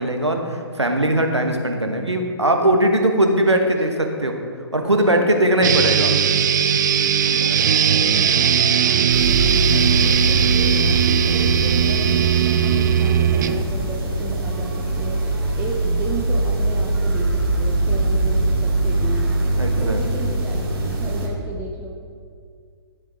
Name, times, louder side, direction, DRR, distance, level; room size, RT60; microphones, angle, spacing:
voice 1, 0.0-3.9 4.2-4.3 4.7-6.2 19.6-20.0, right 1 dB, 85° right, 4 dB, 1.3 m, -19 dB
voice 2, 3.6-4.2 5.0-5.8 7.2-19.4 19.8-21.9, right 3 dB, 10° right, -2 dB, 0.8 m, -34 dB
sound 1, 5.6-13.6, right 8 dB, 45° right, 0.5 m, -18 dB
sound 2, 9.1-21.3, right 2 dB, 60° right, 2.5 m, -22 dB
12.5 x 7.4 x 3.6 m, 2.1 s
figure-of-eight pair, 125°, 14 cm